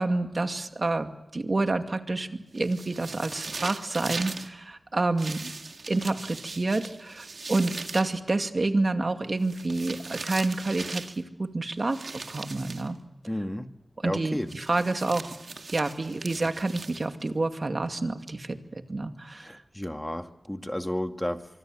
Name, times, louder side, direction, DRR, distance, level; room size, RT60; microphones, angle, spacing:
voice 1, 0.0-5.5 5.9-13.0 14.0-15.3 15.7-19.6, right 2 dB, 55° right, 6 dB, 2.3 m, -28 dB
sound 1, 2.6-4.5 5.2-8.2 9.4-11.2 11.9-12.9 14.5-17.3, right 3 dB, 80° right, 2.0 m, -39 dB
voice 2, 13.3-13.7 14.0-14.6 19.4-21.5, left 1 dB, 15° left, 6 dB, 2.0 m, -32 dB
25.0 x 24.5 x 7.8 m, 0.96 s
wide cardioid pair, 55°, 0 cm